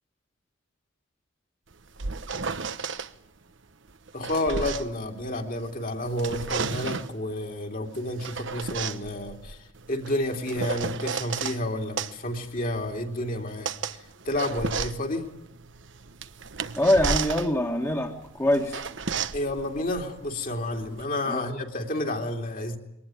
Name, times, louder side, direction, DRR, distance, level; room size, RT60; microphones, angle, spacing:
sound 1, 1.7-3.1 3.9-5.7 6.0-7.2 7.9-11.6 12.0-21.1, right 5 dB, 65° right, 1.1 m, -33 dB
voice 1, 4.1-9.6 9.9-13.7 14.2-15.3 19.3-22.8, left 1 dB, 45° left, 3 dB, 2.9 m, -30 dB
voice 2, 16.8-18.8 21.3-21.4, left 1 dB, 15° left, 1 dB, 1.9 m, -24 dB
23.0 x 19.0 x 9.0 m, 0.83 s
head